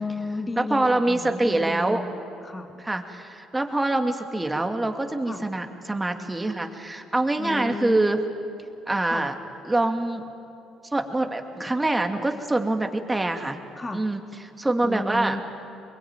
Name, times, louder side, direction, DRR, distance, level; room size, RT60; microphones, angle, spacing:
voice 1, 0.0-2.1 2.4-2.8 5.3-5.4 7.4-8.1 9.0-9.3 13.8-14.0 14.8-15.4, left 2 dB, 25° left, 6 dB, 1.8 m, -33 dB
voice 2, 0.6-2.0 2.8-8.2 8.9-9.3 9.6-10.2 10.9-13.6 13.9-15.4, right 2 dB, 15° right, 5 dB, 2.4 m, -25 dB
23.5 x 21.5 x 9.2 m, 2.7 s
supercardioid pair, 65°, 0 cm